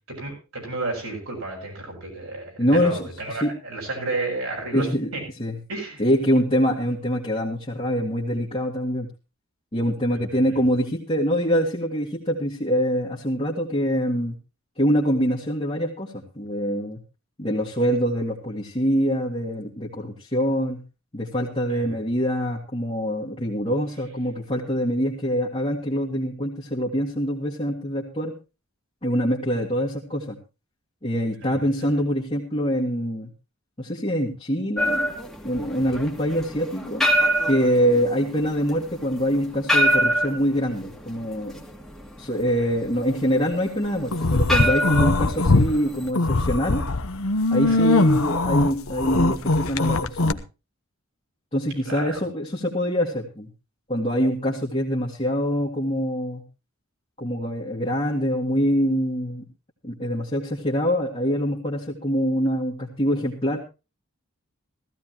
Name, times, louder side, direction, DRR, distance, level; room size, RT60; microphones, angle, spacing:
voice 1, 0.1-5.2 5.7-6.0 21.7-22.0 31.4-31.7 47.7-47.8 51.8-52.2, right 2 dB, 75° right, 0 dB, 7.5 m, -32 dB
voice 2, 2.6-3.5 4.7-5.1 5.4-5.6 6.0-9.1 9.7-14.3 14.8-17.0 17.4-20.8 21.1-28.3 29.0-30.4 31.0-33.3 33.8-35.1 35.4-37.1 37.5-41.6 42.2-46.8 47.5-50.4 51.5-53.5 53.9-56.4 57.2-59.4 59.8-63.6, equal, 25° left, -4 dB, 1.9 m, -24 dB
sound 1, 34.8-46.1, equal, ahead, 2.0 m, -25 dB
sound 2, 44.1-45.7 46.1-50.3, left 2 dB, 75° left, 1.0 m, -21 dB
15.5 x 15.5 x 3.0 m, 0.30 s
head